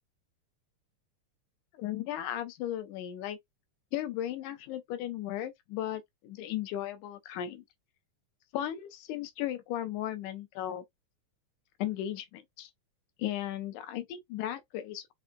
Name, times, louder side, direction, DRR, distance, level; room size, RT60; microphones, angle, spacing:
voice 1, 1.8-3.4 3.9-7.6 8.5-10.8 11.8-12.7 13.2-15.1, left 12 dB, 85° left, 2.2 m, -36 dB
5.4 x 2.5 x 2.2 m
omnidirectional pair, 3.4 m